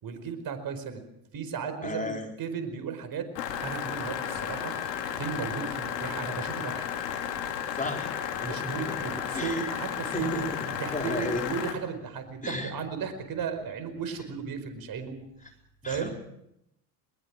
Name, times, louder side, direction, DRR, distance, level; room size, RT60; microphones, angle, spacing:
voice 1, 0.0-1.0 1.3-3.3 3.6-4.8 5.1-6.9 8.4-10.5 10.8-15.1 15.9-16.1, right 6 dB, 45° right, 9 dB, 5.0 m, -35 dB
voice 2, 1.8-2.3 7.8-8.1 8.4-9.1 9.3-9.7 10.1-11.6 12.4-12.7 15.8-16.1, left 2 dB, 15° left, 2 dB, 4.4 m, -34 dB
sound 1, 3.4-11.7, left 9 dB, 85° left, 3.1 m, -33 dB
21.5 x 21.5 x 6.2 m, 0.78 s
hypercardioid pair, 80°, 48 cm